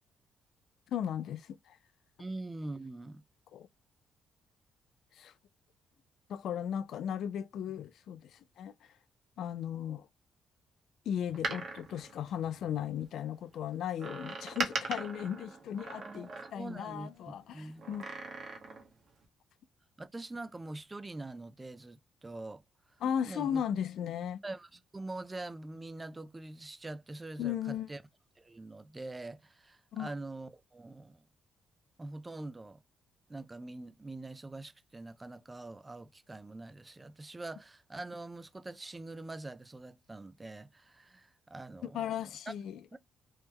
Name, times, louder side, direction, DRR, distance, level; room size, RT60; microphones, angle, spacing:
voice 1, 0.9-1.8 3.5-3.7 5.2-5.3 6.3-8.7 9.4-10.1 11.1-18.1 23.0-24.4 27.4-27.9 29.9-30.1 41.8-42.8, left 9 dB, 75° left, 0.3 m, -36 dB
voice 2, 2.2-3.2 15.9-17.9 20.0-22.6 23.2-23.6 24.4-28.0 28.4-31.2 32.0-32.8 33.3-42.5 42.9-43.0, right 2 dB, 20° right, 0.4 m, -44 dB
Door, 11.2-13.0 14.0-16.9 17.8-18.9 19.2-19.3, right 3 dB, 60° right, 1.0 m, -40 dB
3.0 x 2.2 x 3.4 m
cardioid pair, 90°, 0 cm